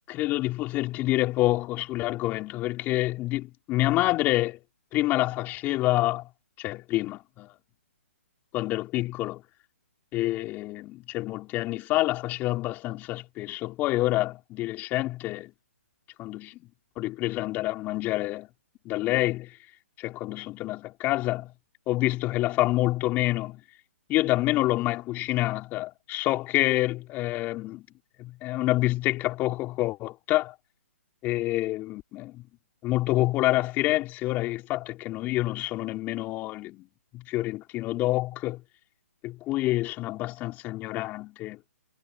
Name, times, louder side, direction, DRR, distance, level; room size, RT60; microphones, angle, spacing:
voice 1, 0.1-4.6 4.9-6.3 6.6-7.5 8.5-9.4 10.1-15.5 16.2-16.6 17.0-18.5 18.8-19.6 20.0-21.5 21.9-23.6 24.1-27.9 28.2-30.5 31.2-32.5 32.8-36.9 37.1-38.6 39.2-41.6, left 17 dB, 25° left, 4.0 m, -27 dB
hypercardioid pair, 140°, 8 cm